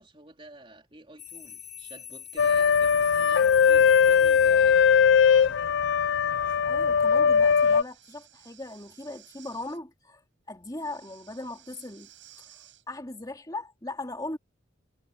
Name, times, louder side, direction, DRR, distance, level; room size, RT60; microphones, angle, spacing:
voice 1, 0.0-4.8, right 2 dB, 25° right, 3.2 m, -49 dB
sound 1, 1.2-5.2, left 8 dB, 40° left, 3.6 m, -44 dB
sound 2, 2.4-7.8, left 7 dB, 65° left, 0.4 m, -20 dB
voice 2, 6.6-10.2 10.5-12.1 12.9-14.4, left 2 dB, 20° left, 2.6 m, -38 dB
Breathing, 7.3-9.8 10.7-12.8, right 12 dB, 75° right, 5.7 m, -55 dB
head